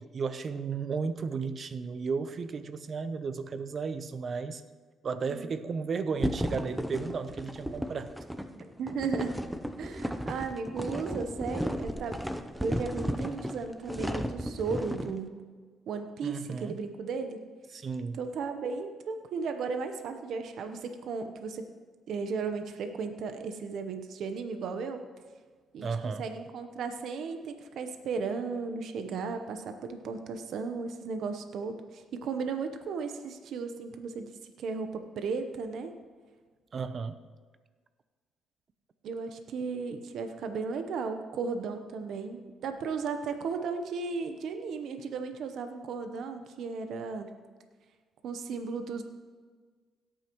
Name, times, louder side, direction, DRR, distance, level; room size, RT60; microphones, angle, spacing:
voice 1, 0.0-4.6 5.0-8.1 16.2-16.8 17.7-18.2 25.8-26.3 36.7-37.2, right 5 dB, 50° right, 12 dB, 0.7 m, -34 dB
sound 1, 6.2-15.1, equal, 5° right, 0.7 m, -34 dB
voice 2, 8.5-9.4 9.8-12.2 12.6-15.5 15.9-17.4 18.1-21.6 22.1-25.0 25.7-25.9 26.2-35.9 39.0-47.3 48.2-49.0, right 5 dB, 70° right, 7 dB, 0.9 m, -35 dB
17.0 x 8.8 x 3.1 m, 1.5 s
cardioid pair, 90°, 0 cm